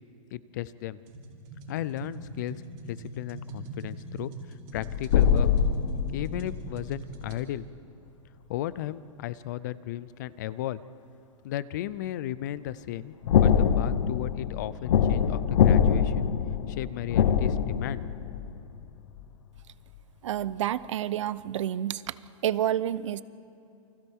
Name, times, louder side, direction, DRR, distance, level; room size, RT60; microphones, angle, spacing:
voice 1, 0.3-1.0 1.7-4.3 4.7-5.5 6.1-7.7 8.5-10.8 11.4-13.1 13.4-16.3 16.7-18.1, left 13 dB, 35° left, 18 dB, 0.4 m, -35 dB
sound 1, 1.1-7.4, right 2 dB, 35° right, 3.7 m, -42 dB
sound 2, 4.7-7.3 13.2-18.8 19.2-19.3, left 8 dB, 65° left, 1.0 m, -24 dB
voice 2, 20.2-22.1 22.4-23.2, right 11 dB, 60° right, 17 dB, 0.7 m, -29 dB
29.0 x 25.0 x 3.6 m, 2.8 s
supercardioid pair, 175°, 17 cm